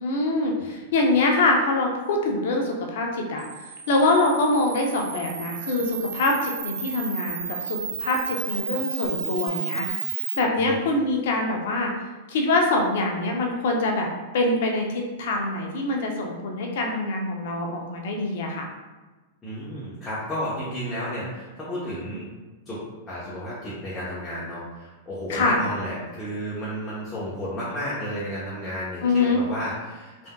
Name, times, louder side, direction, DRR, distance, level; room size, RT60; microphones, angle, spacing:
voice 1, 0.0-3.4 3.9-11.9 12.3-14.1 14.3-18.7 25.3-25.6 29.0-29.4, left 2 dB, 70° left, 2 dB, 0.6 m, -24 dB
Camera, 3.4-10.4, right 6 dB, 80° right, 0.4 m, -32 dB
voice 2, 19.4-22.3 22.7-30.3, equal, 15° left, -10 dB, 1.0 m, -32 dB
3.4 x 2.6 x 2.2 m, 1.2 s
hypercardioid pair, 115°, 0 cm